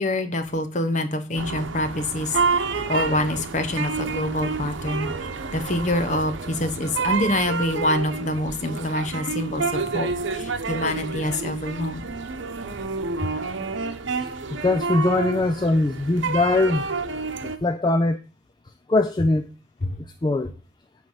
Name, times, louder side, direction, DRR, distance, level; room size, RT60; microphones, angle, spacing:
voice 1, 0.0-5.1 5.5-12.0 13.2-13.3 19.8-20.0, left 1 dB, 40° left, 0.9 m, -26 dB
sound 1, 1.3-17.6, right 4 dB, 80° right, 0.9 m, -29 dB
voice 2, 14.5-16.9 17.4-18.2 18.9-19.5 20.2-20.5, left 2 dB, 20° left, 0.4 m, -21 dB
9.5 x 3.3 x 6.5 m
head